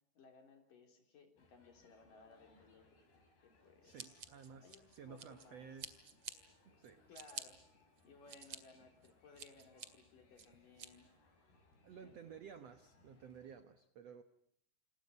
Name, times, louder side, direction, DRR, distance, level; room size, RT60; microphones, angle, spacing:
voice 1, 0.1-2.9 3.4-4.3 4.6-5.7 7.1-7.6 8.0-11.1 11.9-12.4, left 4 dB, 55° left, 4 dB, 5.1 m, -62 dB
sound 1, 1.4-13.6, left 3 dB, 70° left, 8.7 m, -70 dB
voice 2, 3.8-6.1 6.8-7.0 11.8-14.2, right 7 dB, 70° right, 9 dB, 1.5 m, -54 dB
Scissors, 4.0-5.5 5.8-6.3 6.8-7.4 8.0-8.6 9.0-9.9 10.4-10.9, right 7 dB, 45° right, 2.5 m, -49 dB
28.5 x 28.5 x 5.4 m, 0.73 s
omnidirectional pair, 4.7 m